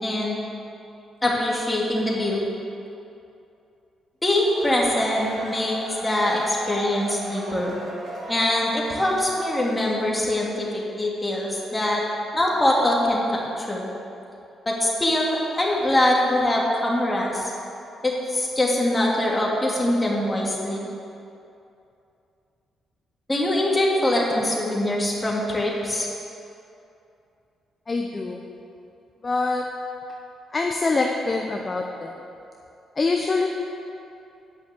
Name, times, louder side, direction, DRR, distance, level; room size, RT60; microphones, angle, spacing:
voice 1, 0.0-0.4 1.2-2.4 4.2-5.8 6.0-7.8 8.3-12.0 12.3-13.9 14.7-17.5 18.0-20.9 23.3-26.1, left 1 dB, 15° left, -3 dB, 2.4 m, -23 dB
sound 1, 4.3-9.3, right 1 dB, 60° right, 2.6 m, -36 dB
voice 2, 27.9-28.4 29.2-29.6 30.5-32.1 33.0-33.5, left 3 dB, 30° left, 2 dB, 0.7 m, -24 dB
9.9 x 5.7 x 7.6 m, 2.7 s
cardioid pair, 80°, 0 cm